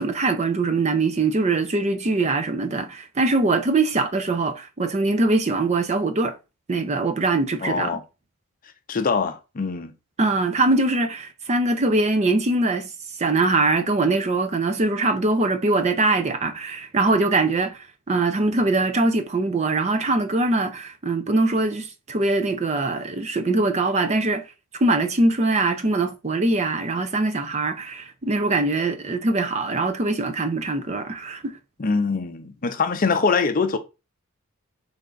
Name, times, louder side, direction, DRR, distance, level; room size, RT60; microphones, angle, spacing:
voice 1, 0.0-6.3 6.7-7.9 10.2-12.9 13.2-24.4 24.8-31.6, right 2 dB, 30° right, 0.5 m, -22 dB
voice 2, 7.6-8.0 8.9-9.9 31.8-33.8, left 4 dB, 40° left, 0.5 m, -23 dB
3.8 x 3.3 x 3.8 m
head